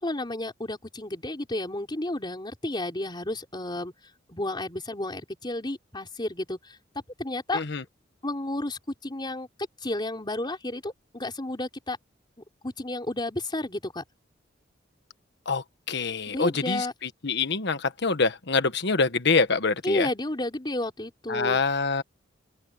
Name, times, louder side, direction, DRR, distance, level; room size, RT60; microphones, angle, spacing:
voice 1, 0.0-3.9 4.3-6.8 7.2-7.6 8.2-9.5 9.8-12.0 12.6-14.0 16.3-16.9 19.8-21.6, left 1 dB, 25° left, 4.1 m, -31 dB
voice 2, 7.5-7.8 15.5-16.9 17.2-20.1 21.3-22.0, left 4 dB, 65° left, 1.4 m, -25 dB
open air
head